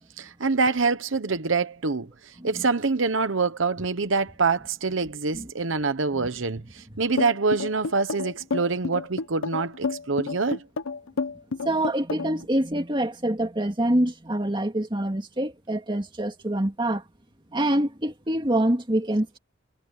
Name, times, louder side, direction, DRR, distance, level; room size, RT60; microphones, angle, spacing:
voice 1, 0.2-10.6, right 4 dB, 65° right, 1.0 m, -25 dB
sound 1, 7.2-12.4, left 4 dB, 85° left, 0.7 m, -30 dB
voice 2, 11.6-17.0 17.5-19.4, right 1 dB, 25° right, 2.1 m, -25 dB
head